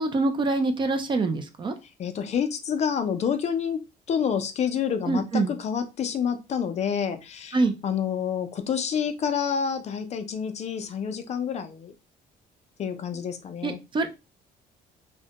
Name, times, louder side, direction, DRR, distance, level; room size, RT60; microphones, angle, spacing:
voice 1, 0.0-1.7 5.1-5.5 7.5-7.7 13.6-14.1, right 3 dB, 30° right, 8 dB, 0.3 m, -25 dB
voice 2, 2.0-3.8 4.1-11.9 12.8-13.8, left 7 dB, 40° left, 8 dB, 0.4 m, -28 dB
2.1 x 2.1 x 2.8 m, 0.27 s
cardioid pair, 110°, 17 cm